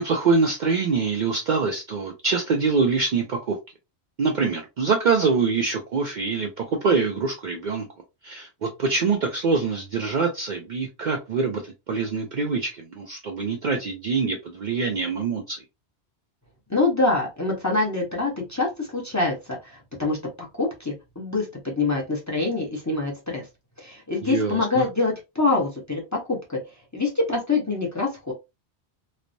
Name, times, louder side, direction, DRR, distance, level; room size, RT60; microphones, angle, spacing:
voice 1, 0.0-3.6 4.2-7.9 8.2-15.6 24.2-24.8, right 4 dB, 55° right, 2 dB, 0.5 m, -24 dB
voice 2, 16.7-20.2 20.6-23.5 23.8-26.6 26.9-28.3, left 3 dB, 20° left, -2 dB, 0.7 m, -25 dB
3.1 x 2.0 x 2.5 m, 0.25 s
omnidirectional pair, 1.1 m